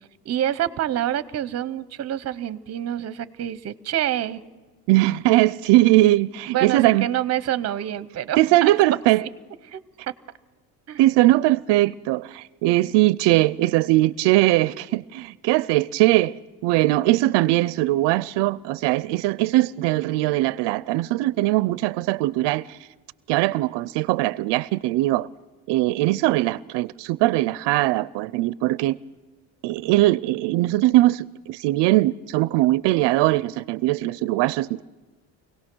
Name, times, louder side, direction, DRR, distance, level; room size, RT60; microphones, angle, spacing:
voice 1, 0.2-4.4 6.5-8.7 9.2-9.3 9.7-9.8 10.9-11.0, right 12 dB, 35° right, 0.8 m, -27 dB
voice 2, 4.9-7.1 8.4-9.2 11.0-22.8 23.3-25.3 25.7-29.0 29.6-34.8, right 17 dB, 80° right, 0.5 m, -20 dB
25.0 x 17.5 x 6.1 m
cardioid pair, 145°, 42 cm